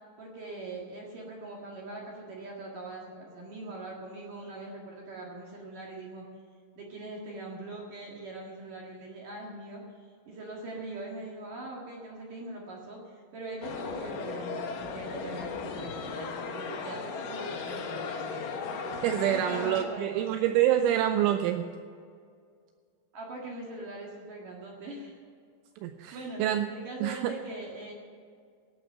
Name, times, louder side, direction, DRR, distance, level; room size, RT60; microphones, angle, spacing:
voice 1, 0.2-6.2 6.8-9.8 10.3-18.4 19.2-20.4 23.1-25.1 26.1-26.4 26.7-27.9, right 2 dB, 55° right, -2 dB, 2.7 m, -42 dB
sound 1, 13.6-19.8, left 5 dB, 85° left, 1.9 m, -36 dB
voice 2, 19.0-21.7 25.8-26.7 27.0-27.3, right 11 dB, 85° right, 7 dB, 2.8 m, -26 dB
18.0 x 8.0 x 7.5 m, 2.2 s
omnidirectional pair, 6.0 m